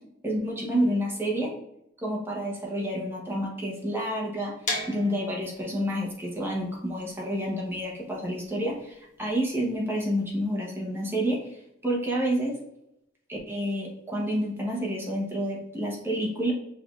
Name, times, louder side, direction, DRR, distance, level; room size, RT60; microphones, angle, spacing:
voice 1, 0.2-1.5 2.0-4.5 4.9-12.5 13.3-16.5, equal, 10° right, -3 dB, 0.9 m, -29 dB
sound 1, 4.6-10.4, left 2 dB, 40° left, 1.2 m, -38 dB
5.8 x 3.4 x 2.4 m, 0.80 s
head